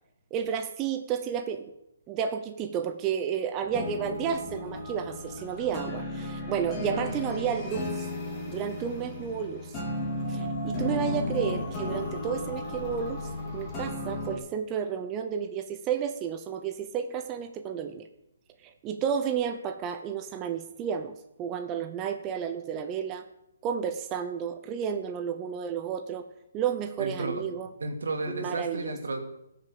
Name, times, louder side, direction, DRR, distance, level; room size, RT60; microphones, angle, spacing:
voice 1, 0.3-1.7 2.1-8.1 8.5-9.8 10.3-13.2 13.5-18.0 18.6-23.2 23.6-26.2 26.5-27.7 28.3-28.9, right 8 dB, 20° right, 7 dB, 0.7 m, -32 dB
sound 1, 3.6-14.4, left 2 dB, 15° left, 3.3 m, -34 dB
voice 2, 27.0-27.4 27.8-29.2, right 3 dB, 85° right, 4 dB, 2.6 m, -33 dB
16.5 x 6.7 x 7.0 m, 0.83 s
hypercardioid pair, 160°, 0 cm